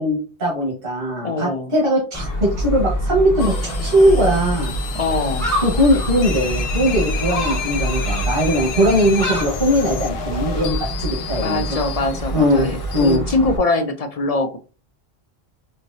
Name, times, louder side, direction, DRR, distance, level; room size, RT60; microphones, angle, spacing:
voice 1, 0.0-4.8 5.6-11.8 12.3-12.7 12.9-13.2, equal, 65° right, -5 dB, 1.7 m, -19 dB
voice 2, 1.2-1.7 4.9-5.5 11.4-14.6, left 3 dB, 50° left, 7 dB, 0.4 m, -22 dB
Gull seagull, 2.1-13.6, equal, 20° left, 1.0 m, -26 dB
sound 1, 3.4-13.2, left 7 dB, 80° left, 0.8 m, -32 dB
4.3 x 2.9 x 2.6 m, 0.34 s
omnidirectional pair, 1.1 m